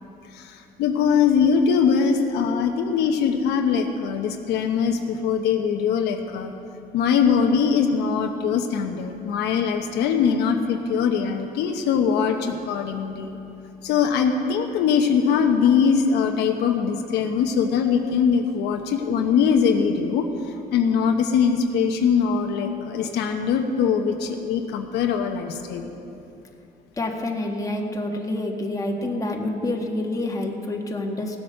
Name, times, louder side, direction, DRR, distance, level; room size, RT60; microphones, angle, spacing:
voice 1, 0.3-6.5 6.9-13.4 13.8-20.3 20.7-25.9, left 6 dB, 85° left, 4 dB, 1.0 m, -22 dB
voice 2, 27.0-31.4, left 1 dB, 20° left, 1 dB, 1.5 m, -27 dB
16.5 x 8.1 x 6.6 m, 2.7 s
cardioid pair, 110°, 17 cm